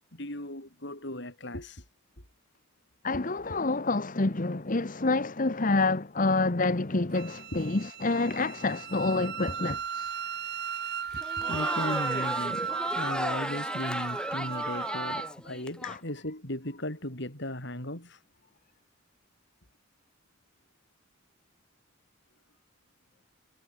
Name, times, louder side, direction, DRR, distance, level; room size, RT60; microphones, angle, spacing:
voice 1, 0.1-1.8 3.1-3.6 9.5-9.8 11.1-18.2, left 1 dB, 60° left, 7.1 m, -37 dB
voice 2, 3.0-9.8 15.8-15.9, left 3 dB, 40° left, 1.1 m, -27 dB
Wind instrument woodwind instrument, 7.1-15.3, right 7 dB, 55° right, 4.5 m, -35 dB
Crowd, 11.1-16.0, left 1 dB, 5° left, 6.2 m, -35 dB
head